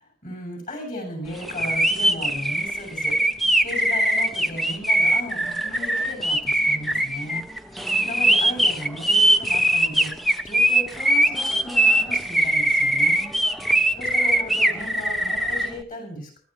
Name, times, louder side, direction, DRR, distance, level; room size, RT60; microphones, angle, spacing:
voice 1, 0.2-10.1 10.4-13.3 13.9-16.4, left 1 dB, 45° left, 2 dB, 7.7 m, -36 dB
sound 1, 1.4-15.7, right 1 dB, ahead, 0.8 m, -21 dB
21.0 x 14.0 x 3.2 m, 0.43 s
head